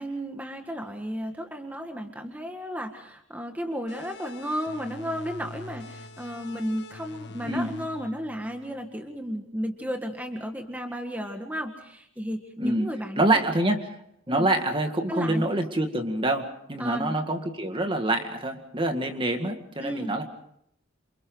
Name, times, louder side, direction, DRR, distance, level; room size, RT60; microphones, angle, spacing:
voice 1, 0.0-13.4 14.3-14.5 15.1-15.6 16.8-17.2 19.8-20.1, equal, 10° right, 4 dB, 1.9 m, -33 dB
sound 1, 3.9-9.1, left 2 dB, 60° left, 1.6 m, -44 dB
voice 2, 12.6-13.9 14.3-20.2, right 1 dB, 25° right, 5 dB, 2.1 m, -26 dB
28.5 x 27.5 x 4.0 m, 0.72 s
head